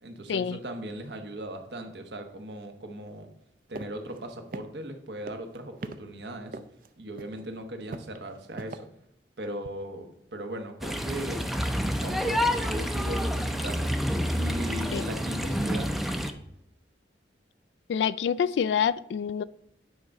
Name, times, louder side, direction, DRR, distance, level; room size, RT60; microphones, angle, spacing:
voice 1, 0.0-3.3 3.7-6.6 7.0-8.9 9.4-11.5 11.9-13.9 14.4-15.9, right 1 dB, 70° right, 5 dB, 1.1 m, -38 dB
sound 1, 3.7-3.9 4.2-4.3 4.5-4.9 5.3-6.0 6.5-6.9 7.2-7.4 7.9-8.8, right 3 dB, 55° right, 0.5 m, -38 dB
sound 2, 10.8-16.3, equal, ahead, 0.5 m, -28 dB
voice 2, 17.9-19.4, left 7 dB, 75° left, 18 dB, 0.3 m, -26 dB
9.4 x 3.7 x 5.2 m, 0.77 s
head